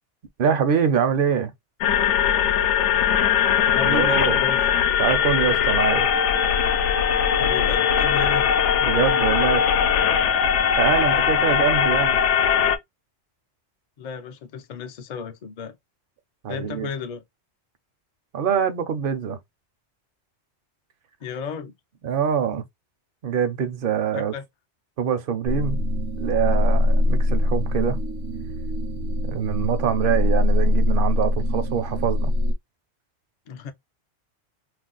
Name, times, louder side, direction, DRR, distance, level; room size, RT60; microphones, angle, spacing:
voice 1, 0.4-1.5 3.8-4.4 5.0-6.1 8.8-9.6 10.8-12.2 16.4-16.9 18.3-19.4 22.0-22.6 23.2-24.3 25.0-25.8 26.2-28.0 29.2-32.3, right 8 dB, 60° right, 0.7 m, -24 dB
sound 1, 1.8-12.8, left 8 dB, 80° left, 0.9 m, -20 dB
voice 2, 3.7-4.7 7.2-8.5 11.4-11.5 14.0-15.8 16.5-17.2 21.2-21.7 24.1-24.5 33.5-33.7, left 6 dB, 55° left, 0.5 m, -33 dB
sound 2, 25.4-32.5, left 1 dB, 85° right, 0.9 m, -23 dB
2.5 x 2.1 x 3.7 m
omnidirectional pair, 1.2 m